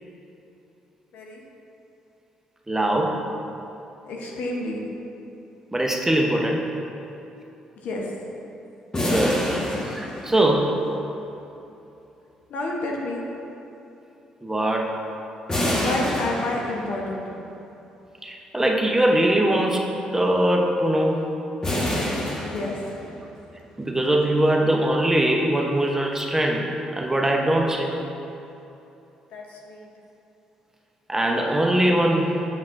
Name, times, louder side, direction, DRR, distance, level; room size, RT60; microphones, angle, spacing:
voice 1, 2.7-3.2 5.7-6.6 9.0-9.4 9.9-10.8 14.4-14.9 18.2-19.8 20.1-21.2 23.8-26.6 26.9-27.9 31.1-32.3, right 1 dB, 15° right, 1 dB, 0.9 m, -21 dB
voice 2, 4.0-4.8 7.8-8.1 12.5-13.2 15.8-17.3 22.4-22.8 29.3-29.9, left 2 dB, 65° left, -1 dB, 0.9 m, -30 dB
sound 1, 8.9-10.8 15.5-17.1 21.6-23.3, left 1 dB, 25° left, 1.4 m, -27 dB
7.5 x 7.3 x 2.6 m, 2.9 s
hypercardioid pair, 50°, 3 cm